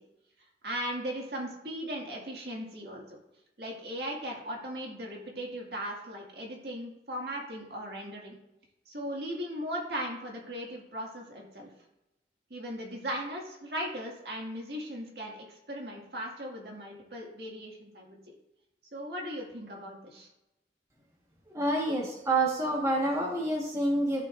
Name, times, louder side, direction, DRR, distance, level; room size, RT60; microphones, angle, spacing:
voice 1, 0.6-3.1 3.6-8.3 8.9-11.7 12.5-18.2 18.9-20.3, equal, 60° right, -1 dB, 2.0 m, -38 dB
voice 2, 21.5-24.3, right 1 dB, 15° right, -3 dB, 1.4 m, -28 dB
13.5 x 5.8 x 2.5 m, 0.91 s
head